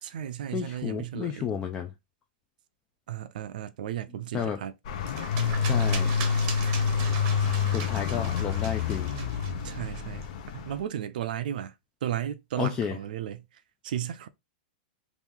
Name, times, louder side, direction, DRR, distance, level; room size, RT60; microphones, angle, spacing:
voice 1, 0.0-1.5 3.1-4.7 7.7-7.9 9.6-10.3 10.5-11.7 12.0-13.4 13.8-14.3, right 11 dB, 70° right, 0.4 m, -34 dB
voice 2, 0.5-1.9 4.3-4.6 5.6-6.1 7.7-9.1 12.6-13.0, left 8 dB, 15° left, 0.3 m, -31 dB
sound 1, 4.8-10.8, left 6 dB, 50° left, 0.6 m, -27 dB
sound 2, 5.1-10.3, right 7 dB, 35° right, 0.7 m, -40 dB
2.9 x 2.6 x 3.6 m
supercardioid pair, 165°, 5 cm